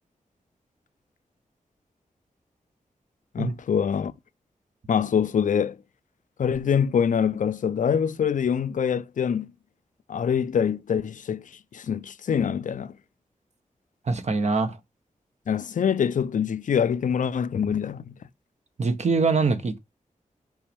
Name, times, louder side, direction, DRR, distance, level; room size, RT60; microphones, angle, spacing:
voice 1, 3.3-4.1 4.9-5.8 6.4-9.5 10.1-13.0 15.5-18.1, left 7 dB, 70° left, 0.5 m, -25 dB
voice 2, 14.1-14.8 18.8-19.8, right 4 dB, 55° right, 1.0 m, -23 dB
5.5 x 5.2 x 3.4 m
wide cardioid pair, 120°, 14 cm